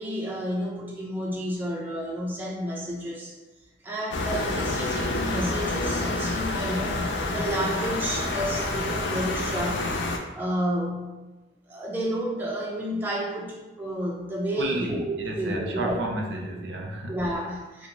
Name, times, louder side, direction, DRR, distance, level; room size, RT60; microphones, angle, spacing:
voice 1, 0.0-3.3 3.8-7.0 7.3-9.9 10.3-11.1 11.7-16.0 17.1-17.9, equal, 10° right, -3 dB, 0.3 m, -30 dB
sound 1, 4.1-10.2, left 2 dB, 90° left, 0.4 m, -28 dB
voice 2, 14.6-17.2, right 2 dB, 80° right, 1 dB, 0.4 m, -31 dB
2.9 x 2.1 x 2.6 m, 1.1 s
head